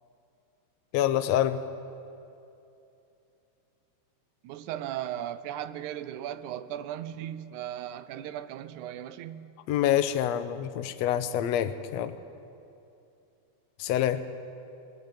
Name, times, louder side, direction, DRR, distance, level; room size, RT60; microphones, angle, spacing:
voice 1, 0.9-1.6 9.7-12.1 13.8-14.2, left 11 dB, 70° left, 9 dB, 1.9 m, -26 dB
voice 2, 4.4-9.5, right 11 dB, 85° right, 13 dB, 2.2 m, -37 dB
21.5 x 16.5 x 9.1 m, 2.7 s
omnidirectional pair, 3.4 m